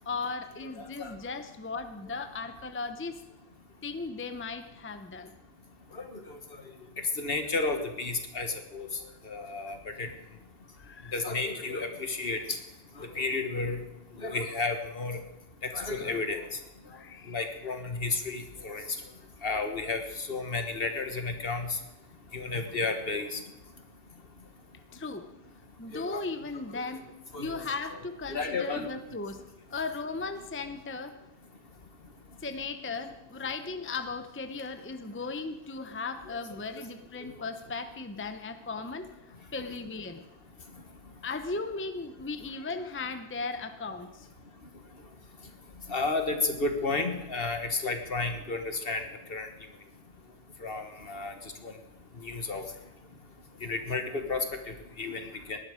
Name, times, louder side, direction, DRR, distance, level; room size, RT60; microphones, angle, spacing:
voice 1, 0.1-3.2 3.8-5.3 10.8-11.2 16.9-17.5 24.9-25.3 25.8-27.1 27.4-29.4 29.7-31.2 32.4-39.1 39.5-40.2 41.2-44.3 55.2-55.3, left 4 dB, 15° left, 8 dB, 0.7 m, -37 dB
voice 2, 7.2-8.9 9.2-10.1 11.1-12.6 13.0-13.8 14.2-15.2 15.7-16.4 17.3-18.8 19.4-21.7 22.3-23.4 25.9-26.2 27.3-27.5 28.3-28.9 45.9-49.5 50.6-51.3 52.2-52.6 53.6-54.4 55.0-55.6, left 3 dB, 60° left, 6 dB, 1.7 m, -32 dB
18.5 x 11.5 x 5.1 m, 0.97 s
omnidirectional pair, 1.1 m